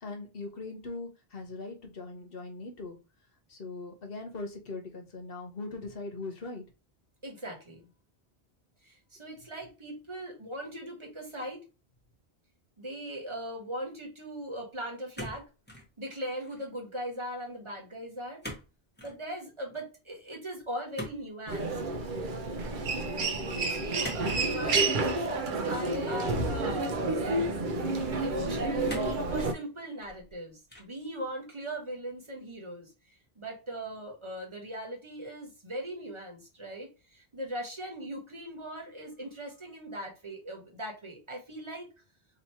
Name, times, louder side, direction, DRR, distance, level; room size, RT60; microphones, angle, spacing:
voice 1, 0.0-3.0 3.5-6.6 23.0-23.6, left 3 dB, 65° left, 1.1 m, -40 dB
voice 2, 7.2-7.8 8.8-11.6 12.8-15.5 16.0-18.4 19.0-21.8 23.2-26.9 27.9-41.9, right 1 dB, 30° right, 1.2 m, -39 dB
sound 1, 15.1-15.9 16.3-16.7 18.4-18.7 19.0-19.2 20.9-21.7 24.0-24.3 24.8-25.0 25.9-26.7 27.4-27.5 28.9-29.3 29.9-30.3 30.7-31.0, left 1 dB, 10° left, 1.1 m, -42 dB
Human voice, 21.5-29.5, right 2 dB, 55° right, 0.7 m, -30 dB
2.9 x 2.8 x 4.3 m
omnidirectional pair, 1.1 m